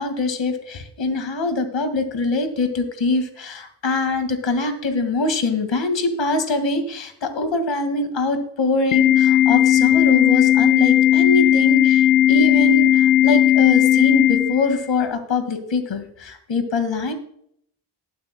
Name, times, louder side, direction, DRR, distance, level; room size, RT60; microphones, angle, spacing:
voice 1, 0.0-17.1, left 3 dB, 70° left, 7 dB, 2.0 m, -23 dB
Organ, 8.9-14.9, left 12 dB, 40° left, 0.9 m, -16 dB
19.5 x 8.7 x 2.2 m, 0.69 s
wide cardioid pair, 105°, 46 cm